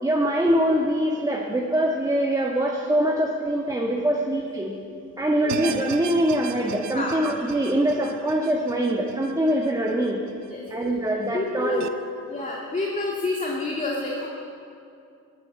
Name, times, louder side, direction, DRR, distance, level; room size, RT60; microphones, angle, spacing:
voice 1, 0.0-4.7 5.2-10.2 10.7-11.9, right 1 dB, 10° right, -1 dB, 1.6 m, -23 dB
sound 1, 5.5-10.7 11.1-11.2 11.8-11.9, right 11 dB, 70° right, 0.7 m, -38 dB
voice 2, 11.3-11.9 12.3-14.3, left 2 dB, 25° left, -3 dB, 2.1 m, -28 dB
15.5 x 9.7 x 8.5 m, 2.5 s
cardioid pair, 90°, 30 cm